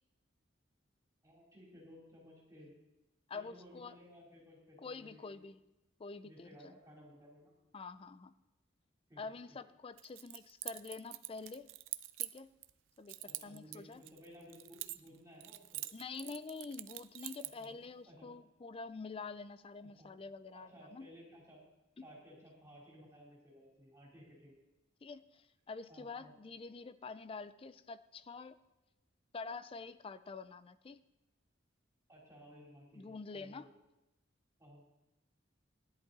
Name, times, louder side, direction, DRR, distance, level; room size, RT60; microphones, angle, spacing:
voice 1, 1.2-2.7 3.3-5.4 6.2-7.5 9.1-9.2 9.5-9.6 13.2-15.8 17.4-17.8 18.1-18.3 19.8-20.1 20.5-21.6 22.0-24.6 25.9-26.3 32.1-33.7 34.6-34.8, equal, 15° right, -4 dB, 3.5 m, -57 dB
voice 2, 3.3-3.9 4.8-5.6 6.0-6.8 7.7-8.3 9.2-11.7 12.2-12.5 13.0-13.2 13.4-14.0 15.9-21.1 22.0-22.1 25.0-28.6 29.3-31.0 33.0-33.7, left 4 dB, 30° left, 14 dB, 0.4 m, -47 dB
Keys jangling, 10.0-12.7 13.1-15.2 15.4-17.7, right 17 dB, 75° right, 0.5 m, -45 dB
13.5 x 10.5 x 4.0 m, 0.98 s
head